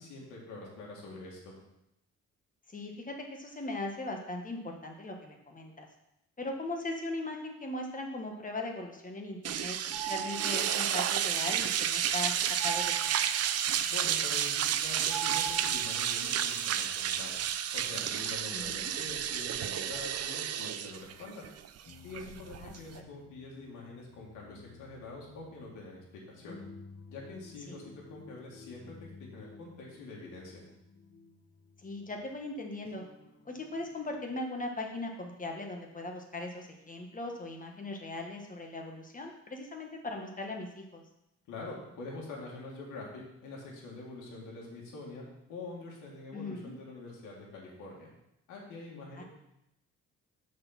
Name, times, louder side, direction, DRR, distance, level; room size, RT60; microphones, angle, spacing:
voice 1, 0.0-1.5 13.9-17.4 17.7-21.4 22.0-26.6 27.1-30.6 41.5-48.1 48.5-49.2, left 3 dB, 90° left, -3 dB, 2.0 m, -45 dB
voice 2, 2.7-5.9 6.4-9.8 10.1-12.3 12.6-13.1 18.5-18.9 22.6-22.7 27.7-27.8 31.8-33.0 33.4-41.0 46.3-46.7 49.2-49.3, left 2 dB, 25° left, 2 dB, 1.2 m, -39 dB
sound 1, 9.4-23.0, right 9 dB, 55° right, 0.5 m, -31 dB
sound 2, 9.9-10.9 12.6-13.6 15.1-16.2, right 8 dB, 85° right, 0.8 m, -39 dB
sound 3, 21.9-34.4, left 4 dB, 45° left, 1.1 m, -54 dB
6.5 x 4.3 x 5.8 m, 0.84 s
cardioid pair, 90°, 30 cm